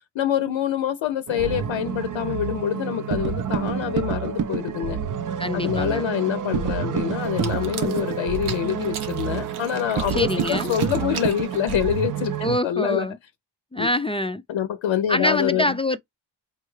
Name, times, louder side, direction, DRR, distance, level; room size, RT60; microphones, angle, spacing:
voice 1, 0.1-5.0 5.5-13.1 13.8-13.9 14.5-15.6, left 10 dB, 70° left, 0.6 m, -26 dB
sound 1, 1.3-12.6, right 8 dB, 45° right, 0.5 m, -28 dB
voice 2, 5.4-6.1 10.1-10.8 12.4-13.2 13.7-14.4 15.1-16.0, left 1 dB, 15° left, 0.3 m, -25 dB
sound 2, 7.2-12.1, right 7 dB, 85° right, 1.0 m, -38 dB
5.6 x 2.3 x 3.1 m
cardioid pair, 65°, 48 cm